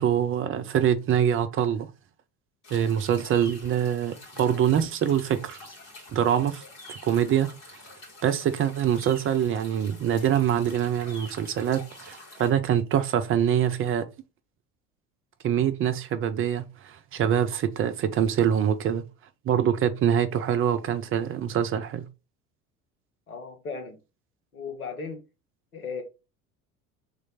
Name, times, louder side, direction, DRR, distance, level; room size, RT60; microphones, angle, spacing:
voice 1, 0.0-1.9 2.7-5.6 6.1-6.6 6.9-7.5 8.2-14.1 15.4-19.0 19.5-22.1, right 9 dB, 30° right, 0.5 m, -24 dB
sound 1, 2.6-12.5, left 1 dB, 50° left, 2.2 m, -47 dB
voice 2, 23.3-24.0 24.5-25.2 25.7-26.0, left 5 dB, 85° left, 0.9 m, -36 dB
3.3 x 3.2 x 3.9 m
figure-of-eight pair, 65°, 42 cm